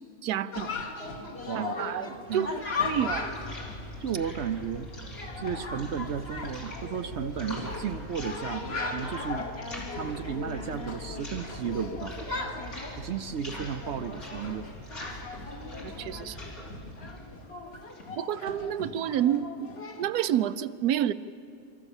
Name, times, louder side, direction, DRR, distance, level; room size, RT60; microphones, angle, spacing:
voice 1, 0.2-0.7 1.5-2.5 2.8-3.3 15.8-16.5 18.2-19.7 20.0-21.1, right 10 dB, 85° right, 13 dB, 1.2 m, -29 dB
Chatter, 0.5-20.1, left 3 dB, 40° left, 1.8 m, -38 dB
voice 2, 1.5-1.9 2.3-2.5 4.0-4.9 5.4-9.5 9.9-12.2 13.0-14.7, right 7 dB, 60° right, 10 dB, 0.8 m, -34 dB
sound 1, 2.2-18.2, left 1 dB, 65° left, 4.9 m, -42 dB
29.5 x 14.0 x 7.2 m, 2.4 s
omnidirectional pair, 1.6 m